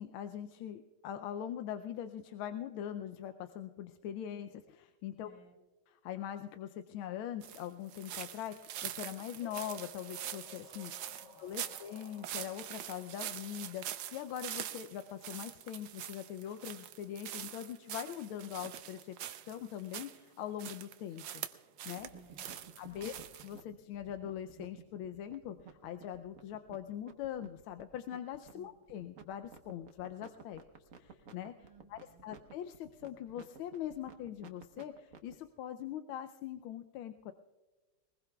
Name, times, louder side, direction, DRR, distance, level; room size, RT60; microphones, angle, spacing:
voice 1, 0.0-5.3 5.9-11.1 11.4-19.2 19.5-21.4 21.8-22.1 22.8-23.1 23.4-30.6 31.0-31.5 31.9-37.3, left 10 dB, 90° left, 8 dB, 1.5 m, -42 dB
voice 2, 5.2-5.6 11.0-11.8 22.1-22.6 22.9-23.2 28.5-28.7 31.6-32.3, right 2 dB, 70° left, 2 dB, 3.7 m, -61 dB
sound 1, 7.4-20.2 20.6-22.1 22.4-23.6, right 11 dB, 70° right, 1.4 m, -44 dB
sound 2, 9.4-15.1, left 4 dB, 40° left, 2.9 m, -57 dB
sound 3, 22.0-35.4, right 6 dB, 50° right, 1.3 m, -54 dB
21.5 x 20.5 x 2.3 m, 1.2 s
omnidirectional pair, 2.2 m